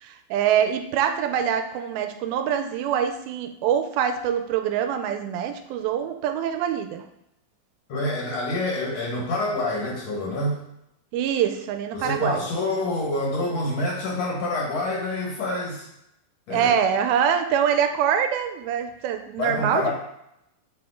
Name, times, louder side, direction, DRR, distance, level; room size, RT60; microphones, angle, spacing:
voice 1, 0.0-7.0 11.1-12.4 16.5-19.9, right 8 dB, 85° right, 7 dB, 2.4 m, -24 dB
voice 2, 7.9-10.6 11.9-15.9 16.5-16.7 19.4-19.9, left 2 dB, 55° left, -3 dB, 2.1 m, -27 dB
7.5 x 5.0 x 3.6 m, 0.79 s
omnidirectional pair, 4.4 m